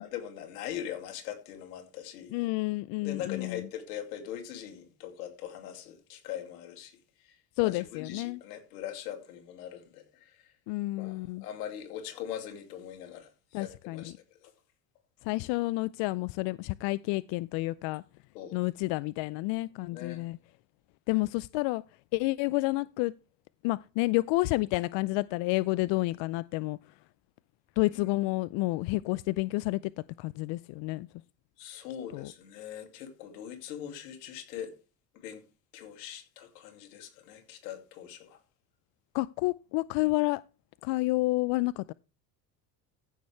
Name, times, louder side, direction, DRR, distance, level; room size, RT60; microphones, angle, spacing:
voice 1, 0.0-2.3 3.0-7.0 7.2-7.4 7.6-10.5 11.0-14.1 14.4-14.5 18.3-18.6 19.4-19.5 19.9-20.3 28.0-28.1 31.6-34.7 35.1-35.4 35.7-38.4, left 10 dB, 85° left, 2.6 m, -41 dB
voice 2, 2.3-3.6 7.6-8.4 10.7-11.4 13.5-14.0 15.3-18.0 18.5-20.4 21.1-21.8 22.1-23.1 23.6-26.8 27.8-29.8 30.2-31.1 32.1-32.3 39.1-40.4 40.8-41.9, left 21 dB, 65° left, 0.6 m, -29 dB
15.0 x 6.5 x 3.3 m
supercardioid pair, 75°, 48 cm